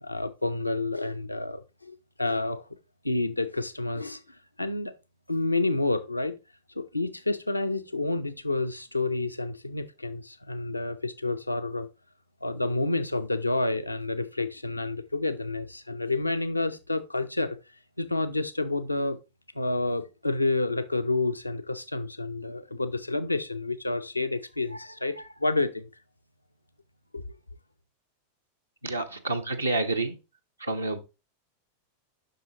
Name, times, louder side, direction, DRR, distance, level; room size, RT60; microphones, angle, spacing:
voice 1, 0.0-2.6 3.0-4.9 5.3-6.3 6.7-11.9 12.4-17.6 18.0-19.2 19.5-25.9 27.1-27.2, left 2 dB, 85° left, 0.5 m, -29 dB
voice 2, 28.8-30.2 30.6-31.0, right 2 dB, 80° right, 0.7 m, -28 dB
7.7 x 6.0 x 2.9 m
figure-of-eight pair, 90°, 0 cm